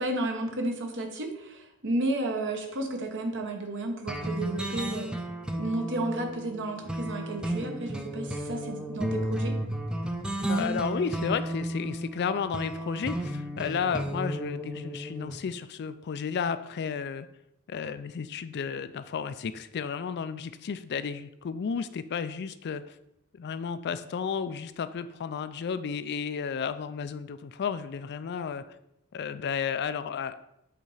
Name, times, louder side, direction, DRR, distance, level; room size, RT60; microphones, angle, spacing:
voice 1, 0.0-5.1 5.6-9.6, right 1 dB, 55° right, 4 dB, 1.2 m, -32 dB
sound 1, 4.1-15.4, right 1 dB, 5° right, 0.5 m, -33 dB
voice 2, 10.4-17.3 17.7-23.0 23.3-28.6 29.1-30.3, left 6 dB, 50° left, 12 dB, 0.4 m, -32 dB
7.9 x 4.1 x 4.8 m, 0.81 s
head